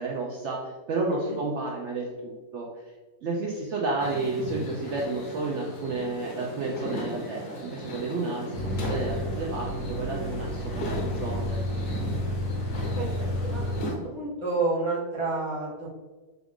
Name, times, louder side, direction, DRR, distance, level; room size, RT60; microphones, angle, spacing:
voice 1, 0.0-2.7 3.2-11.6, right 3 dB, 70° right, -2 dB, 0.7 m, -31 dB
sound 1, 4.0-13.9, left 1 dB, 90° left, 1.3 m, -37 dB
sound 2, 8.5-13.8, left 1 dB, 65° left, 1.2 m, -31 dB
voice 2, 13.4-15.9, right 3 dB, 30° left, -9 dB, 0.6 m, -30 dB
3.9 x 2.4 x 3.5 m, 1.3 s
omnidirectional pair, 1.6 m